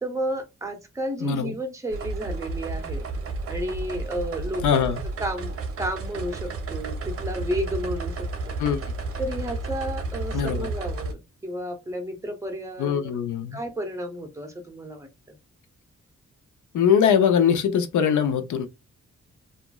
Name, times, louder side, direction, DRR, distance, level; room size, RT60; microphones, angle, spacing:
voice 1, 0.0-3.0 3.5-8.3 9.2-13.2 13.5-15.1, equal, 10° right, 0.6 m, -32 dB
voice 2, 1.2-1.5 4.6-5.0 8.6-8.8 10.3-10.7 12.8-13.6 16.7-18.7, left 8 dB, 85° left, 0.6 m, -21 dB
sound 1, 1.9-11.1, right 3 dB, 50° right, 0.6 m, -32 dB
2.9 x 2.4 x 2.2 m
wide cardioid pair, 125°, 29 cm